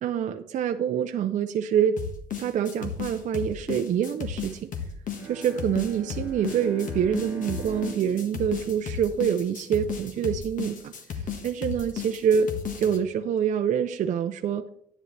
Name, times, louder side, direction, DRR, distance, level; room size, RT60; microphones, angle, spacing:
voice 1, 0.0-2.0 2.4-4.7 5.2-12.5 12.8-14.7, right 8 dB, 45° right, 7 dB, 0.5 m, -26 dB
sound 1, 2.0-13.0, left 7 dB, 50° left, 1.6 m, -34 dB
Bowed string instrument, 5.1-10.0, right 5 dB, 10° right, 1.8 m, -43 dB
9.9 x 9.6 x 3.3 m, 0.71 s
cardioid pair, 110°, 17 cm